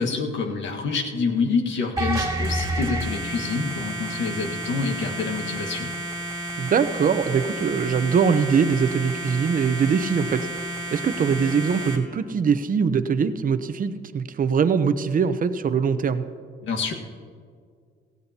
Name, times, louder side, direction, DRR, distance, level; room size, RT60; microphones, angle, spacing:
voice 1, 0.0-5.9 16.6-16.9, left 4 dB, 70° left, 2 dB, 1.6 m, -27 dB
sound 1, 2.0-12.0, right 1 dB, 20° right, 2.5 m, -31 dB
voice 2, 6.6-10.6 10.9-16.3, right 6 dB, 45° right, 11 dB, 0.8 m, -22 dB
17.5 x 15.0 x 2.9 m, 2.1 s
cardioid pair, 90°, 20 cm